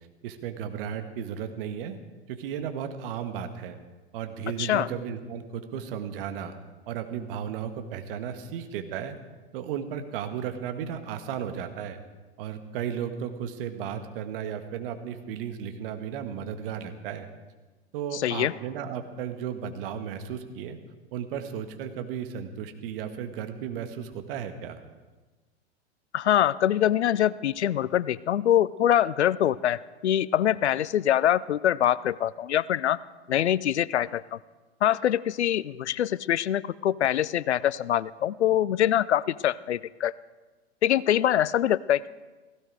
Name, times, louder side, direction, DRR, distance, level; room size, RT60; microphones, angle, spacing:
voice 1, 0.2-2.0 2.3-3.8 4.1-6.5 6.9-9.2 9.5-12.0 12.4-17.3 17.9-20.8 21.1-24.8, right 8 dB, 55° right, 8 dB, 1.8 m, -34 dB
voice 2, 18.1-18.5 26.1-33.0 33.3-34.4 34.8-40.1 40.8-42.1, left 11 dB, 80° left, 20 dB, 0.5 m, -24 dB
16.5 x 16.5 x 4.8 m, 1.2 s
hypercardioid pair, 100°, 33 cm